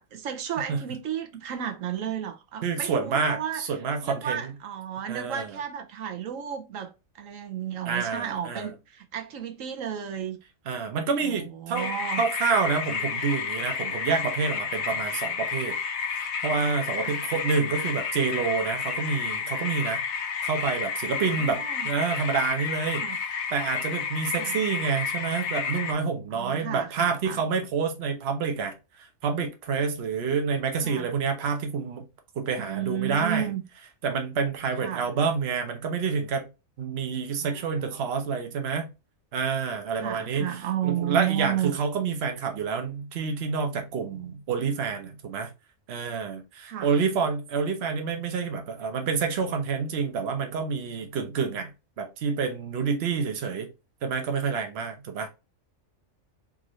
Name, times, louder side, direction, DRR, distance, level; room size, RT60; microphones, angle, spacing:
voice 1, 0.0-3.6 4.0-6.9 7.2-10.4 11.2-12.2 17.0-17.2 21.4-21.9 23.0-23.2 24.4-24.6 26.3-27.4 30.8-31.1 32.6-33.6 34.8-35.1 37.4-38.1 40.0-41.7 46.7-46.9, right 10 dB, 75° right, 1.1 m, -33 dB
voice 2, 2.6-4.5 5.1-5.6 7.9-8.7 10.7-11.9 12.2-15.8 16.0-20.0 20.4-23.1 23.5-28.8 29.2-32.0 32.4-33.5 34.0-36.5 36.8-38.9 39.3-40.6 40.8-45.5 45.9-51.7 52.0-53.7 54.0-55.3, right 5 dB, 55° right, 0.9 m, -28 dB
sound 1, 11.8-25.9, left 6 dB, 85° left, 1.1 m, -31 dB
3.7 x 2.6 x 3.0 m
omnidirectional pair, 1.4 m